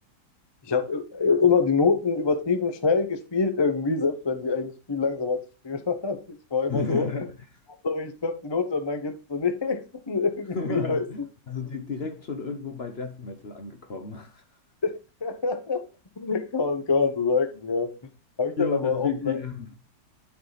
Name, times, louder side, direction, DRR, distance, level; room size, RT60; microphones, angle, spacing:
voice 1, 0.7-5.4 5.6-6.2 6.5-7.1 7.8-9.8 10.1-11.0 14.8-14.9 15.2-15.8 16.2-17.9 18.4-19.4, left 4 dB, 25° left, 0.6 m, -25 dB
voice 2, 6.7-7.3 10.5-14.4 18.6-19.7, left 4 dB, 45° left, 0.9 m, -32 dB
11.5 x 4.7 x 4.0 m
omnidirectional pair, 1.9 m